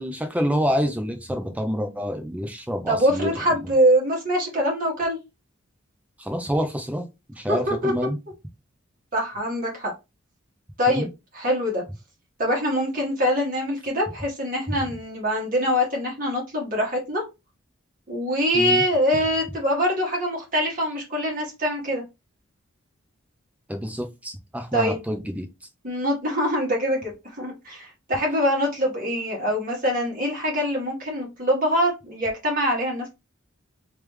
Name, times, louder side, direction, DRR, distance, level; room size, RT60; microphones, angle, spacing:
voice 1, 0.0-3.3 6.2-7.0 7.4-8.2 10.9-11.1 18.5-18.8 23.7-25.5, equal, 5° right, 0.5 m, -27 dB
voice 2, 2.9-5.2 7.5-7.9 9.1-9.9 10.8-11.1 11.3-11.8 12.4-17.2 18.1-22.0 24.7-25.0 25.8-33.1, equal, 40° right, 1.7 m, -24 dB
3.3 x 3.3 x 3.2 m
head